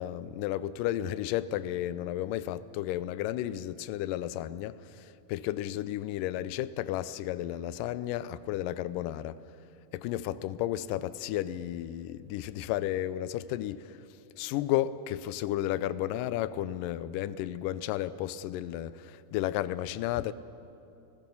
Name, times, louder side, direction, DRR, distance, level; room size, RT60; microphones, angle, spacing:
voice 1, 0.0-9.4 9.9-14.0 14.4-20.3, left 13 dB, 80° left, 2.2 m, -33 dB
28.5 x 16.0 x 7.0 m
omnidirectional pair, 3.9 m